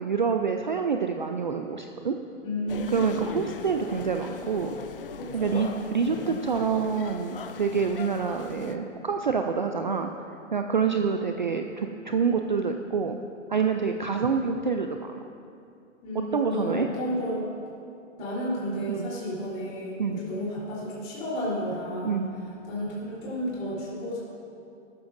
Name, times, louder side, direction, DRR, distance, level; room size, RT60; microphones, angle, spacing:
voice 1, 0.0-2.2 2.9-4.7 5.3-10.1 10.5-13.2 13.5-15.1 16.3-16.9 18.9-19.1 20.0-20.2 22.0-22.3, right 5 dB, 40° right, 5 dB, 0.4 m, -27 dB
voice 2, 2.4-3.4 5.2-5.8 10.8-10.9 16.0-17.5 18.2-22.2 22.7-24.2, equal, 20° left, -6 dB, 3.5 m, -32 dB
sound 1, 2.7-8.8, left 6 dB, 45° left, 0.7 m, -39 dB
19.5 x 12.5 x 2.6 m, 2.6 s
hypercardioid pair, 170°, 39 cm